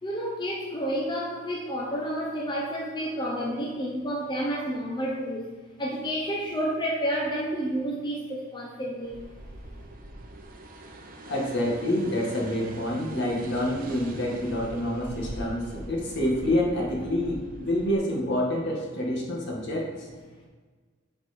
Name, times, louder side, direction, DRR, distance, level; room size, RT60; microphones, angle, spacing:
voice 1, 0.0-5.5 5.8-9.2, equal, 20° left, -3 dB, 0.9 m, -30 dB
sound 1, 9.0-17.9, right 1 dB, 45° right, 0.8 m, -43 dB
voice 2, 11.3-20.1, left 1 dB, 60° left, -2 dB, 1.7 m, -27 dB
8.4 x 4.7 x 4.3 m, 1.5 s
head